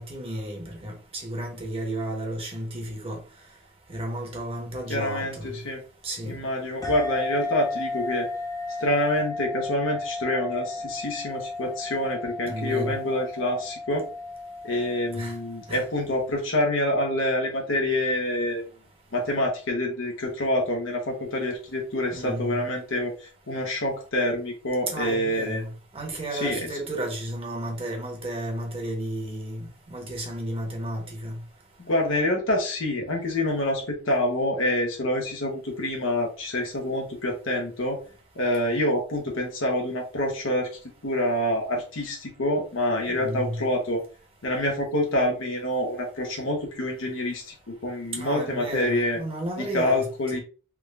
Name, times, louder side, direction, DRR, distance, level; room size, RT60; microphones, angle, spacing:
voice 1, 0.0-3.2 3.9-5.6 6.0-6.4 12.4-13.0 15.1-15.3 15.7-15.8 22.1-22.6 24.9-25.7 25.9-31.4 43.1-43.6 48.1-50.0 50.3-50.4, right 1 dB, 30° right, 1.1 m, -33 dB
voice 2, 4.9-5.8 6.3-8.3 8.8-14.0 14.6-18.6 19.1-25.6 26.3-26.6 31.8-38.0 38.3-44.0 44.4-49.2 49.6-50.4, left 1 dB, 70° left, 0.9 m, -27 dB
sound 1, 6.8-15.9, left 3 dB, 20° left, 0.6 m, -34 dB
3.6 x 2.3 x 3.2 m
head